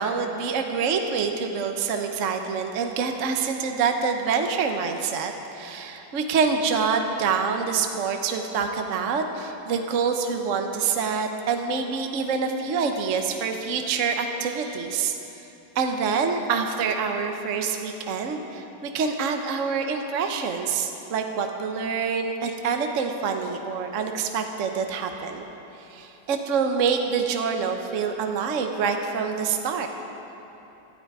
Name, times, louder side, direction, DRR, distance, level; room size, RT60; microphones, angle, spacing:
voice 1, 0.0-15.2 15.7-25.5 25.9-29.9, right 5 dB, 55° right, 4 dB, 0.9 m, -26 dB
17.0 x 12.5 x 4.8 m, 3.0 s
omnidirectional pair, 2.4 m